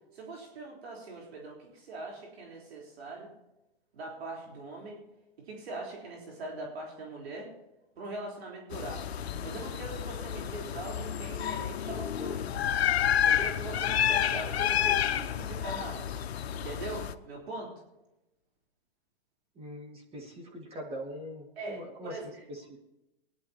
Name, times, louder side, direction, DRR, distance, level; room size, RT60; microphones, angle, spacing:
voice 1, 0.1-3.3 3.9-5.0 5.4-7.5 8.0-9.0 9.4-12.6 13.2-16.1 16.5-17.7 21.6-22.4, right 2 dB, 80° right, -2 dB, 3.8 m, -41 dB
sound 1, 8.7-17.1, left 9 dB, 80° left, 0.7 m, -30 dB
voice 2, 19.6-22.8, equal, 20° right, 1 dB, 2.0 m, -42 dB
20.5 x 10.5 x 2.9 m, 0.95 s
hypercardioid pair, 135°, 31 cm